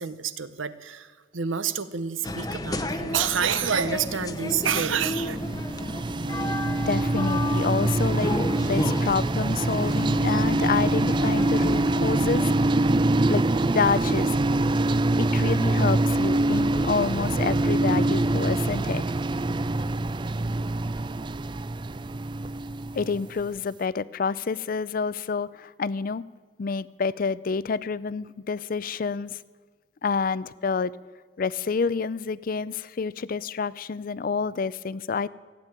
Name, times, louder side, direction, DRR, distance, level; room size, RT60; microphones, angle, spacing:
voice 1, 0.0-5.4, right 7 dB, 90° right, 14 dB, 0.9 m, -28 dB
sound 1, 2.2-13.0, left 1 dB, 20° left, 0.8 m, -33 dB
sound 2, 4.5-23.5, right 2 dB, 25° right, 0.4 m, -24 dB
voice 2, 6.9-8.4 8.7-12.9 13.3-14.4 15.2-19.0 22.9-26.2 26.6-29.4 30.0-30.9 31.4-35.3, left 5 dB, 45° left, 19 dB, 0.4 m, -28 dB
16.0 x 9.1 x 9.1 m, 1.5 s
head